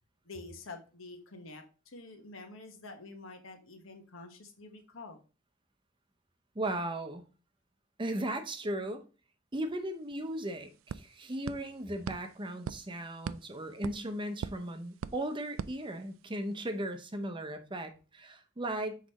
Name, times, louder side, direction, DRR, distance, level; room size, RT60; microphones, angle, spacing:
voice 1, 0.2-5.2, left 3 dB, 80° left, 1.3 m, -48 dB
voice 2, 6.5-7.2 8.0-9.0 9.5-19.0, right 1 dB, 25° right, 0.7 m, -37 dB
sound 1, 9.8-9.9 10.1-16.5, right 6 dB, 80° right, 0.3 m, -44 dB
6.2 x 5.1 x 3.0 m
head